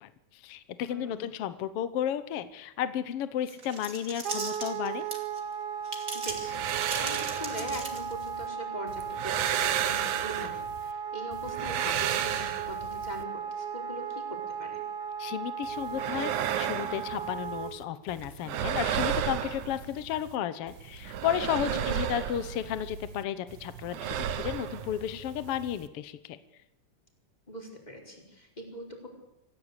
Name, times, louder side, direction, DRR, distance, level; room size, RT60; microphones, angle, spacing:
voice 1, 0.0-5.0 15.2-26.4, left 10 dB, 65° left, 13 dB, 1.6 m, -33 dB
voice 2, 0.8-1.3 6.1-14.2 14.6-14.8 21.7-22.0 27.5-29.1, equal, 15° left, 1 dB, 4.6 m, -41 dB
sound 1, 3.5-5.4 5.8-8.3, right 3 dB, 30° right, 3.0 m, -38 dB
Wind instrument woodwind instrument, 4.2-17.7, right 7 dB, 55° right, 2.2 m, -36 dB
sound 2, 6.3-8.5 8.9-10.9 11.3-13.2 15.6-17.8 18.1-20.3 20.7-23.2 23.5-25.9, right 10 dB, 80° right, 2.6 m, -33 dB
25.5 x 15.5 x 8.2 m, 0.92 s
omnidirectional pair, 3.5 m